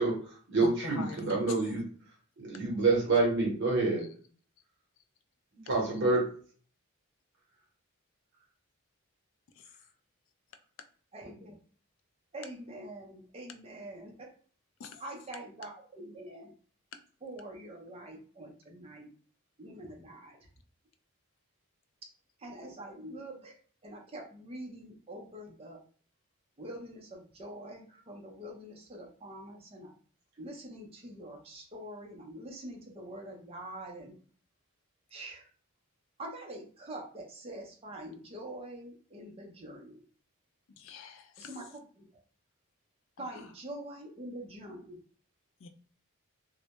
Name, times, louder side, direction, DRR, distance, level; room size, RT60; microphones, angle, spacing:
voice 1, 0.0-1.8 2.4-4.0 5.7-6.2, right 3 dB, 55° right, -2 dB, 0.8 m, -27 dB
voice 2, 0.6-1.5 14.8-15.0 40.8-41.6 45.6-45.7, left 5 dB, 60° left, 8 dB, 0.3 m, -43 dB
voice 3, 11.1-11.5 12.3-14.3 15.0-16.5 17.2-19.1 19.6-20.4 22.4-23.6 23.8-25.8 26.6-29.9 30.4-34.1 35.1-35.5 36.2-40.0 41.4-42.0 43.2-45.0, right 1 dB, 25° right, 0 dB, 0.5 m, -45 dB
2.1 x 2.0 x 2.8 m, 0.44 s
head